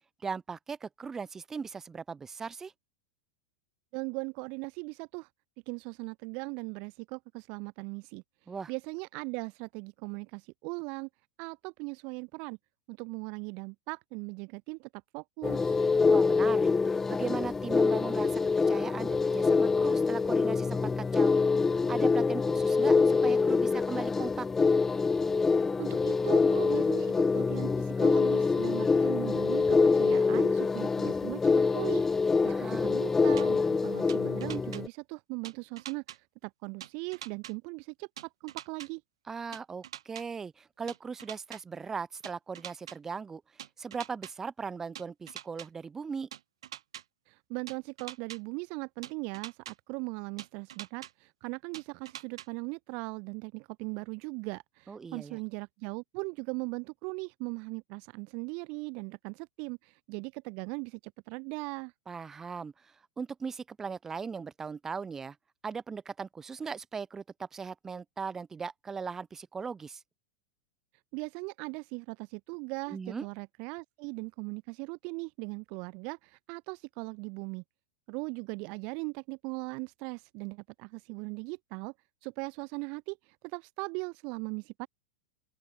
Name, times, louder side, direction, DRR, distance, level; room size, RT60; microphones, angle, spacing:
voice 1, 0.2-2.7 8.5-8.7 16.1-18.4 18.7-21.3 21.6-24.5 32.5-33.0 39.3-46.3 54.9-55.4 62.1-65.4 65.6-70.0 72.9-73.3, right 5 dB, 15° right, 3.9 m, -39 dB
voice 2, 3.9-5.3 5.7-8.2 8.7-11.1 11.4-12.6 12.9-15.8 25.5-32.1 32.4-39.0 47.3-61.9 71.1-77.6 78.1-81.9 82.2-84.9, right 32 dB, 50° right, 1.7 m, -39 dB
sound 1, 15.4-34.9, left 4 dB, 10° left, 0.5 m, -25 dB
sound 2, 33.4-33.5 34.1-34.8 35.4-36.2 36.8-37.5 38.2-38.9 39.5-40.2 40.9-41.6 42.2-43.0 43.6-44.3 45.0-45.7 46.3-47.0 47.7-48.4 49.0-49.7 50.4-51.1 51.7-52.5, right 11 dB, 85° right, 2.5 m, -44 dB
open air
supercardioid pair, 130°, 3 cm